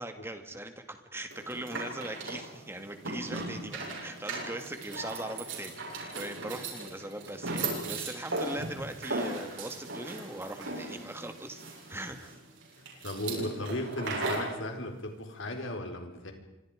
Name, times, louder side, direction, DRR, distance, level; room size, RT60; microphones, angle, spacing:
voice 1, 0.0-12.4, right 1 dB, 10° right, 7 dB, 2.2 m, -40 dB
sound 1, 1.3-14.6, right 2 dB, 70° right, 7.8 m, -37 dB
voice 2, 13.0-16.3, left 1 dB, 70° left, 4 dB, 4.6 m, -36 dB
29.0 x 25.5 x 5.2 m, 0.99 s
head